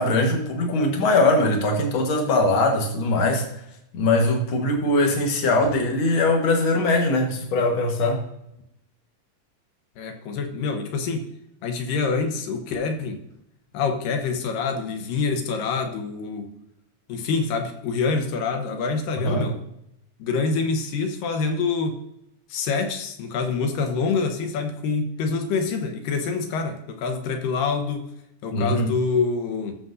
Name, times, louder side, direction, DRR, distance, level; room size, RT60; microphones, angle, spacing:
voice 1, 0.0-3.4 3.9-8.2 19.2-19.4 28.5-28.9, left 2 dB, 50° left, 2 dB, 1.6 m, -21 dB
voice 2, 10.0-11.3 11.6-13.2 13.7-16.5 17.1-19.6 20.2-21.9 22.5-28.1 28.4-29.8, left 4 dB, 70° left, 6 dB, 2.6 m, -26 dB
13.5 x 6.7 x 2.7 m, 0.78 s
omnidirectional pair, 4.2 m